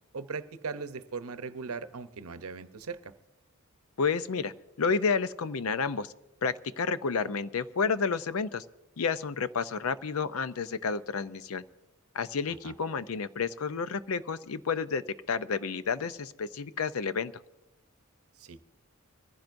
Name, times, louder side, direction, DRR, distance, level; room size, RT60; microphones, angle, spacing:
voice 1, 0.1-3.1 12.6-12.7 18.4-18.6, right 4 dB, 90° right, 11 dB, 0.7 m, -39 dB
voice 2, 4.0-6.1 6.4-8.6 9.0-11.6 12.1-17.3, left 5 dB, 75° left, 14 dB, 0.6 m, -30 dB
23.5 x 15.0 x 2.6 m, 0.94 s
head